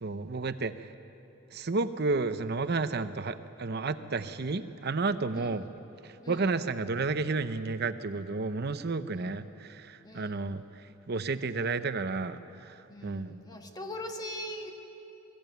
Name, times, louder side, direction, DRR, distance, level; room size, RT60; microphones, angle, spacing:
voice 1, 0.0-0.7 1.5-5.6 6.3-10.6 11.1-12.7 13.0-13.3, right 3 dB, 55° right, 11 dB, 0.8 m, -31 dB
voice 2, 6.2-6.6 9.2-9.6 10.0-10.6 12.9-14.7, left 1 dB, 20° left, 4 dB, 1.5 m, -42 dB
22.5 x 14.5 x 9.3 m, 2.8 s
head